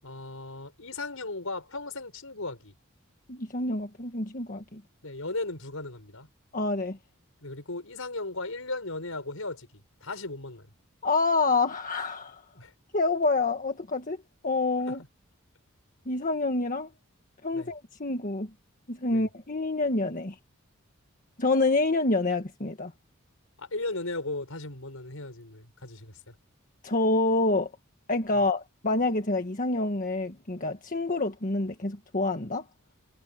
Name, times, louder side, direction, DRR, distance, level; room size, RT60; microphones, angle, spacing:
voice 1, 0.0-2.7 5.0-6.3 7.4-9.7 10.0-10.7 12.6-12.7 14.9-15.0 17.5-17.7 19.1-19.3 23.6-26.4 28.3-28.4, left 2 dB, 70° left, 7.1 m, -36 dB
voice 2, 3.3-4.8 6.5-7.0 11.0-12.4 12.9-15.0 16.1-16.9 17.4-18.5 18.9-20.3 21.4-22.9 26.8-27.7 28.1-32.6, left 2 dB, 40° left, 1.6 m, -27 dB
head